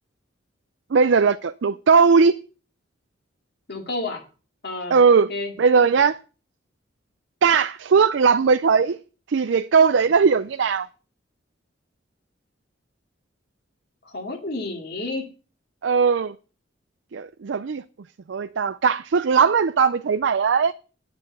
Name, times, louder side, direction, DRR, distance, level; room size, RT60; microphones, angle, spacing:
voice 1, 0.9-2.4 4.9-5.3 5.6-6.2 7.4-9.0 9.3-10.9 15.8-16.3 17.1-17.8 18.3-20.7, right 5 dB, 70° right, 0.4 m, -18 dB
voice 2, 3.7-4.2 4.6-5.0 5.3-5.5 14.0-15.3, left 2 dB, 60° left, 2.6 m, -30 dB
9.4 x 6.9 x 6.8 m
head